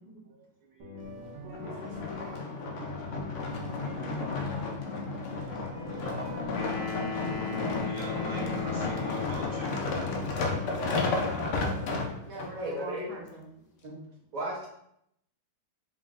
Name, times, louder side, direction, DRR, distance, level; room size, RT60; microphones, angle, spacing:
voice 1, 0.2-1.0 1.6-2.0 3.5-5.0 5.3-5.5 5.9-6.1 7.6-11.0, right 2 dB, 15° right, -6 dB, 0.8 m, -47 dB
sound 1, 0.8-10.2, left 1 dB, 85° right, 1.4 m, -44 dB
sound 2, 1.5-12.5 13.1-13.2, left 3 dB, 65° left, 0.7 m, -32 dB
sound 3, 6.5-9.9, left 5 dB, 90° left, 1.2 m, -37 dB
voice 2, 10.7-11.9 12.2-13.5, right 3 dB, 65° right, -2 dB, 1.2 m, -45 dB
voice 3, 12.5-13.1 13.8-14.0 14.3-14.7, right 1 dB, 45° right, -3 dB, 0.5 m, -35 dB
3.8 x 3.6 x 2.4 m, 0.74 s
omnidirectional pair, 1.7 m